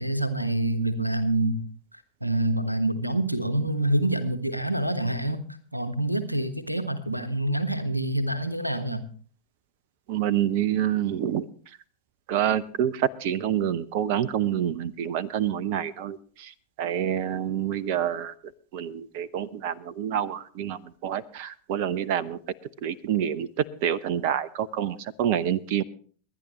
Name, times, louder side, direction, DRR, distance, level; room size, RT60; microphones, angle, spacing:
voice 1, 0.0-1.6 2.2-5.4 5.7-9.0, right 1 dB, 90° right, 10 dB, 1.3 m, -26 dB
voice 2, 10.1-11.5 12.3-16.5 16.8-18.3 18.7-22.4 22.8-25.8, right 10 dB, 45° right, 18 dB, 0.8 m, -27 dB
22.5 x 10.0 x 3.1 m, 0.42 s
figure-of-eight pair, 90°, 0 cm